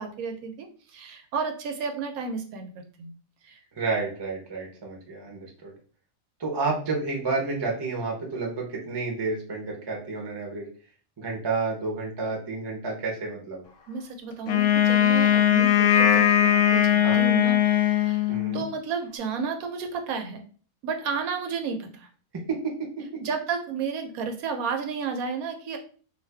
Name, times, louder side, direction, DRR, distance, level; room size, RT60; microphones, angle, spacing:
voice 1, 0.0-3.1 3.4-3.6 13.9-20.4 20.8-22.1 23.2-25.8, right 5 dB, 80° right, 5 dB, 1.0 m, -32 dB
voice 2, 3.7-5.7 6.4-10.7 11.2-13.6 17.0-17.2 18.3-18.6 22.5-23.1, right 3 dB, 25° right, 0 dB, 0.5 m, -30 dB
Wind instrument woodwind instrument, 14.5-18.7, left 10 dB, 70° left, 0.8 m, -20 dB
2.6 x 2.4 x 3.3 m, 0.42 s
omnidirectional pair, 1.5 m